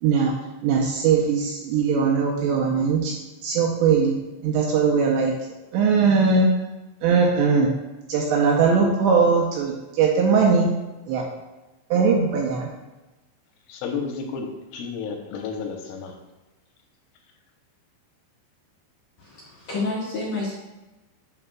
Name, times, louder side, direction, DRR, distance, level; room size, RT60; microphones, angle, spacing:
voice 1, 0.0-0.3 0.6-4.2 4.4-5.3 5.7-6.5 7.0-7.7 8.1-10.7 11.1-11.2 11.9-12.7, right 5 dB, 80° right, -1 dB, 2.6 m, -20 dB
voice 2, 13.7-14.5 14.7-16.1, left 5 dB, 90° left, 3 dB, 3.3 m, -31 dB
voice 3, 19.2-20.6, left 2 dB, 60° left, -9 dB, 1.9 m, -29 dB
11.0 x 4.4 x 2.3 m, 1.1 s
omnidirectional pair, 5.6 m